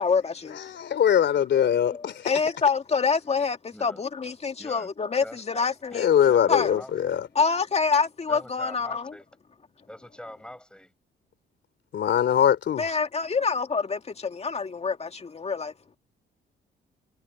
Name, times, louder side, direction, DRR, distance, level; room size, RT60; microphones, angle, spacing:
voice 1, 0.0-0.6 1.9-6.1 6.5-6.8 7.3-9.2 12.8-15.7, left 5 dB, 30° left, 2.0 m, -26 dB
voice 2, 0.7-2.2 5.9-7.3 11.9-12.8, left 9 dB, 65° left, 3.1 m, -22 dB
voice 3, 3.7-4.0 4.6-4.9 5.2-5.6 5.9-6.0 6.3-7.2 8.3-9.2 9.9-10.9, left 1 dB, 5° left, 7.5 m, -44 dB
cardioid pair, 90°, 20 cm